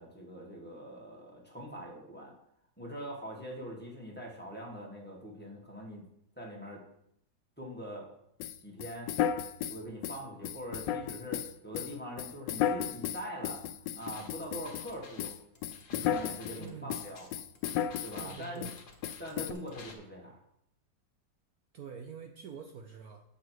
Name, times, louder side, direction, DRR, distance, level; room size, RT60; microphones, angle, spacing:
voice 1, 0.0-2.3 2.8-6.0 6.4-6.8 7.6-8.1 8.6-9.1 9.7-13.6 13.9-15.3 15.9-17.2 18.0-18.7 19.2-20.3, equal, 5° left, -2 dB, 1.7 m, -43 dB
sound 1, 8.4-14.9 15.2-16.6 16.9-18.3 18.6-18.8 19.0-19.5, left 9 dB, 90° left, 1.3 m, -34 dB
sound 2, 14.0-19.9, left 4 dB, 65° left, 2.0 m, -53 dB
voice 2, 16.6-17.0 18.2-18.7 21.7-23.2, right 6 dB, 65° right, 4 dB, 1.1 m, -45 dB
9.0 x 7.1 x 4.7 m, 0.75 s
omnidirectional pair, 1.9 m